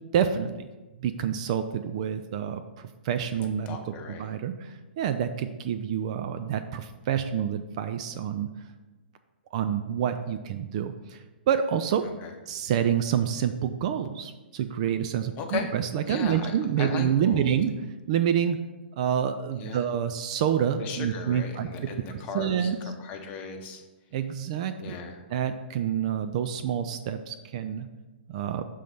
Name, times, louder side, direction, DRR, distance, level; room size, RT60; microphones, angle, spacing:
voice 1, 0.1-0.7 1.0-3.8 4.1-8.5 9.5-12.0 12.5-17.7 18.1-18.6 19.0-21.7 22.3-22.8 24.1-25.0 25.3-27.9 28.3-28.6, right 8 dB, 35° right, 9 dB, 0.4 m, -28 dB
voice 2, 3.7-4.2 12.2-12.3 15.4-15.7 16.1-17.5 19.6-19.8 20.8-23.8 24.8-25.2, left 5 dB, 25° left, 4 dB, 0.8 m, -37 dB
6.5 x 3.9 x 5.7 m, 1.1 s
figure-of-eight pair, 115°, 6 cm